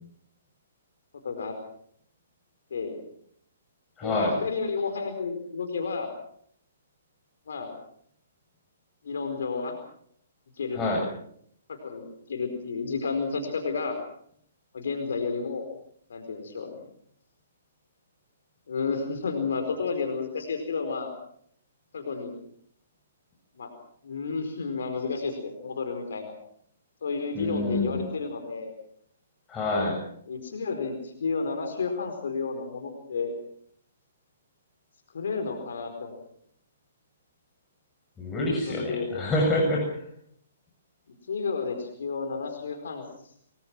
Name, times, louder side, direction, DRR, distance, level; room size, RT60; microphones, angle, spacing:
voice 1, 1.2-1.6 2.7-3.0 4.0-6.1 7.5-7.7 9.0-9.8 10.6-10.8 11.7-14.0 14.7-15.7 16.1-16.8 18.7-21.1 21.9-22.3 23.6-23.7 24.0-26.3 27.0-28.7 30.3-33.3 35.1-36.1 38.7-39.2 41.3-43.0, left 4 dB, 65° left, 5 dB, 4.6 m, -31 dB
voice 2, 4.0-4.4 10.7-11.0 27.3-28.0 29.5-30.0 38.2-40.0, left 1 dB, 15° left, -3 dB, 7.6 m, -27 dB
28.0 x 21.0 x 6.1 m, 0.66 s
figure-of-eight pair, 125°, 0 cm